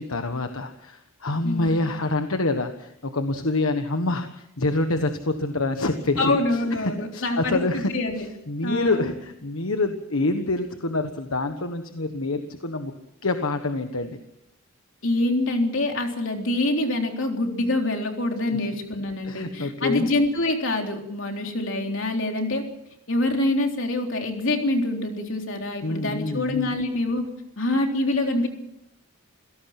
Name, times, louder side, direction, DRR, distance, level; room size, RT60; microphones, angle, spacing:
voice 1, 0.0-6.4 7.1-7.9 8.5-12.9 13.2-14.2 19.2-20.1 25.8-26.7, left 2 dB, 80° left, 7 dB, 1.4 m, -26 dB
voice 2, 1.4-1.9 6.2-8.3 8.6-9.1 15.0-22.6 23.1-27.2 27.6-28.5, left 2 dB, 60° left, 2 dB, 3.7 m, -25 dB
27.5 x 17.5 x 6.0 m, 0.79 s
head